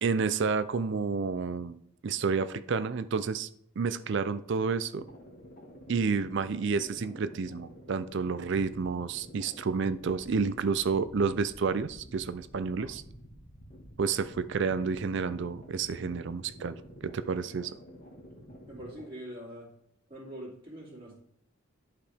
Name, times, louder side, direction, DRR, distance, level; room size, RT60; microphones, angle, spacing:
voice 1, 0.0-3.5 3.8-5.0 5.9-13.0 14.0-16.8 17.0-17.8, right 5 dB, 60° right, 13 dB, 0.4 m, -30 dB
sound 1, 4.9-19.1, equal, 40° left, 1.8 m, -50 dB
voice 2, 18.7-19.7 20.1-21.1, equal, 25° right, -7 dB, 2.7 m, -43 dB
11.5 x 4.9 x 3.5 m, 0.69 s
head